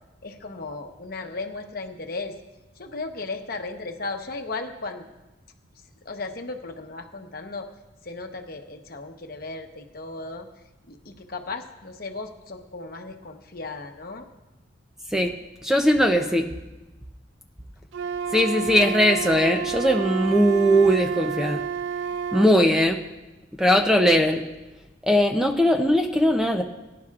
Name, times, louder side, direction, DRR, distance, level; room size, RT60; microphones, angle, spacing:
voice 1, 0.2-2.4 2.8-5.0 6.0-7.7 8.0-10.5 10.9-14.3, left 3 dB, 50° left, 4 dB, 1.0 m, -35 dB
voice 2, 15.6-16.5 18.3-21.6 22.3-23.0 23.6-24.5 25.0-26.6, equal, 5° right, 4 dB, 0.5 m, -20 dB
Wind instrument woodwind instrument, 17.9-22.6, right 7 dB, 75° right, 0.4 m, -30 dB
21.5 x 11.0 x 2.4 m, 1.1 s
head